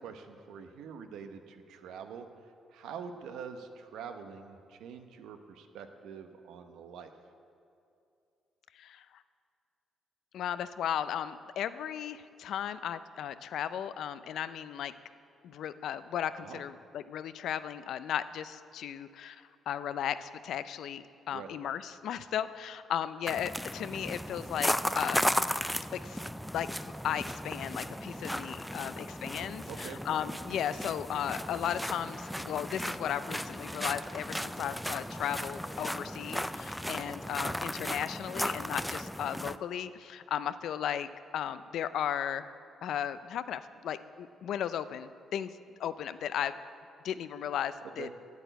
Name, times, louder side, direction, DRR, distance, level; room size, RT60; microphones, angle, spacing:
voice 1, 0.0-2.3 2.7-7.1 16.4-16.6 21.3-21.5 29.7-30.0 37.3-37.5 48.0-48.1, right 7 dB, 85° right, 7 dB, 0.8 m, -45 dB
voice 2, 10.3-14.9 15.4-19.4 19.7-25.4 26.0-26.2 26.5-26.7 27.0-42.5 42.8-45.5 45.8-46.5 47.0-48.1, left 9 dB, 75° left, 13 dB, 0.4 m, -35 dB
sound 1, 23.3-39.6, equal, ahead, 0.3 m, -35 dB
9.2 x 8.2 x 9.2 m, 2.6 s
cardioid pair, 90°, 0 cm